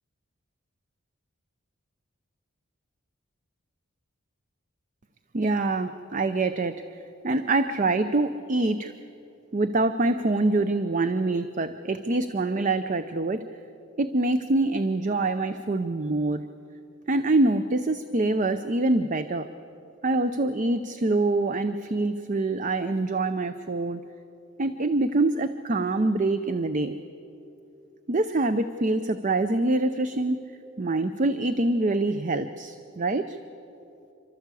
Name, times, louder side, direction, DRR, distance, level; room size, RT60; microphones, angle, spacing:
voice 1, 5.3-6.8 7.2-8.9 9.5-13.4 14.0-16.4 17.1-19.5 20.0-24.0 24.6-27.0 28.1-30.4 30.8-33.4, right 2 dB, 35° right, 10 dB, 0.5 m, -25 dB
29.0 x 12.5 x 8.3 m, 2.8 s
head